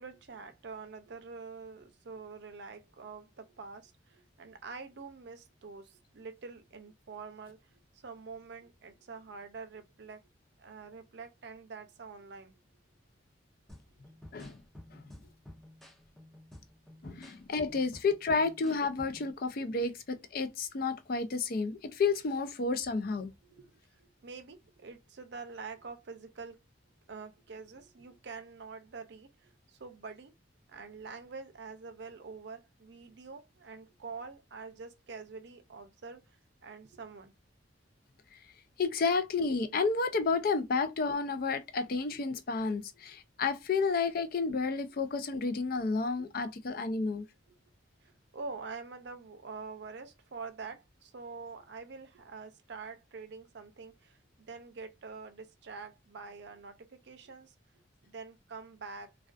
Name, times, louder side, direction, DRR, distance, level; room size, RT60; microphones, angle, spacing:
voice 1, 0.0-10.2 10.6-12.6 23.4-26.6 27.1-30.3 30.7-36.4 36.6-37.3 42.1-42.2 45.7-45.8 47.5-47.6 48.0-57.5 58.0-59.1, right 4 dB, 65° right, 0.5 m, -46 dB
sound 1, 13.7-19.3, left 1 dB, ahead, 0.6 m, -52 dB
voice 2, 17.0-23.3 38.8-47.2, left 4 dB, 50° left, 0.4 m, -31 dB
2.3 x 2.3 x 2.4 m
head